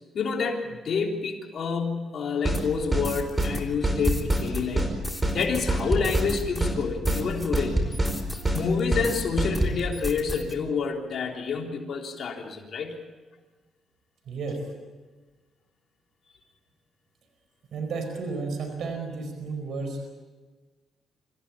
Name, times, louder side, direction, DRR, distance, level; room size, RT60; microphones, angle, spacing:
voice 1, 0.1-4.9 5.3-7.8 8.5-13.0, left 5 dB, 55° left, 1 dB, 3.5 m, -28 dB
sound 1, 2.4-2.6 2.9-3.1 3.4-3.5 3.8-4.5 4.8-4.9 5.2-5.4 5.7-6.3 6.6-6.8 7.1-7.2 7.5-8.1 8.4-8.6 8.9-9.1 9.4-9.8, right 1 dB, 20° right, 4.9 m, -25 dB
sound 2, 2.5-9.3 9.5-10.5, left 1 dB, 5° left, 3.1 m, -37 dB
voice 2, 14.3-14.6 17.7-20.0, right 4 dB, 65° right, 5 dB, 4.7 m, -32 dB
25.5 x 15.5 x 8.7 m, 1.3 s
cardioid pair, 90°, 0 cm